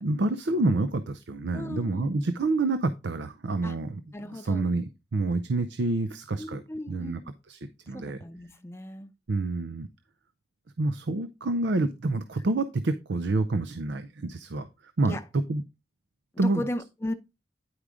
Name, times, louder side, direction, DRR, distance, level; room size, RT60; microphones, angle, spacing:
voice 1, 0.0-6.6 6.9-7.2 7.5-7.6 7.9-8.2 9.3-9.9 10.8-14.7 15.0-15.6 16.4-16.6, right 2 dB, 85° right, 0.6 m, -28 dB
voice 2, 1.5-2.1 3.6-3.8 4.1-4.7 6.4-7.2 7.9-9.1 15.0-15.2 16.4-17.1, left 1 dB, 15° left, 0.6 m, -36 dB
9.7 x 4.9 x 3.6 m
head